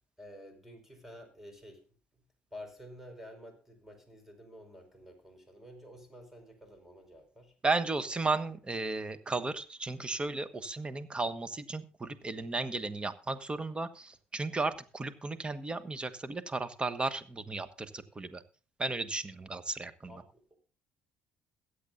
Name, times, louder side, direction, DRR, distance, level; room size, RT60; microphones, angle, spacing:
voice 1, 0.2-1.9 2.5-7.5 20.1-20.6, equal, 5° right, 6 dB, 4.9 m, -50 dB
voice 2, 7.6-18.4 18.8-20.2, right 3 dB, 25° right, 12 dB, 1.4 m, -34 dB
22.0 x 8.5 x 2.6 m, 0.36 s
hypercardioid pair, 60°, 4 cm